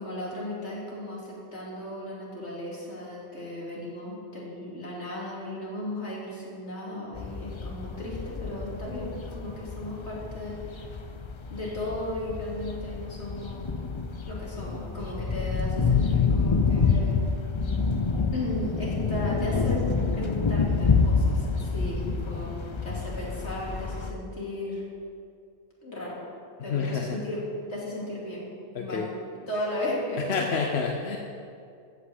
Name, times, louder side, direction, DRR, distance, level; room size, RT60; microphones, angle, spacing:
voice 1, 0.0-10.9 11.5-13.7 14.3-17.2 18.3-19.8 20.1-22.5 22.8-24.8 25.8-26.2 26.6-27.4 27.7-28.5 28.8-29.1 29.5-30.8, left 1 dB, 85° left, -5 dB, 3.2 m, -35 dB
sound 1, 7.1-24.1, left 5 dB, 35° left, 0.5 m, -28 dB
voice 2, 26.7-27.2 28.7-29.1 30.3-31.2, left 5 dB, 70° left, 1 dB, 1.1 m, -28 dB
14.0 x 5.8 x 7.9 m, 2.4 s
omnidirectional pair, 1.1 m